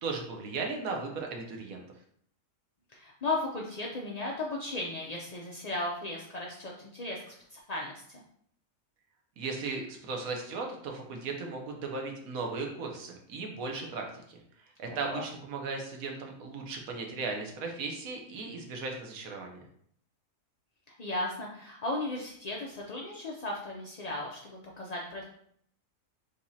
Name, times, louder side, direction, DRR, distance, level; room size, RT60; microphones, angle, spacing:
voice 1, 0.0-1.8 9.4-14.4 14.8-19.6, right 4 dB, 85° right, 2 dB, 1.3 m, -36 dB
voice 2, 2.9-7.2 7.5-8.2 14.9-15.2 21.0-25.2, left 2 dB, 60° left, -2 dB, 0.4 m, -36 dB
5.0 x 3.4 x 2.7 m, 0.66 s
omnidirectional pair, 1.4 m